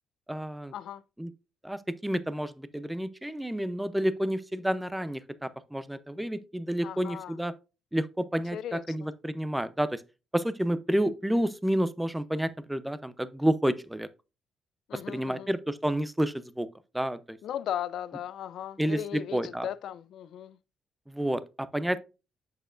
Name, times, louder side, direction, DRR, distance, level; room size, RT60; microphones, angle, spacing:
voice 1, 0.3-0.7 1.2-1.3 1.6-7.5 7.9-10.0 10.3-14.1 14.9-16.7 16.9-17.4 18.8-19.7 21.1-22.0, right 1 dB, 5° right, 0.6 m, -30 dB
voice 2, 6.8-7.3 8.5-8.8 14.9-15.5 17.4-20.6, left 10 dB, 75° left, 0.5 m, -37 dB
7.8 x 6.6 x 2.5 m
cardioid pair, 90°, 0 cm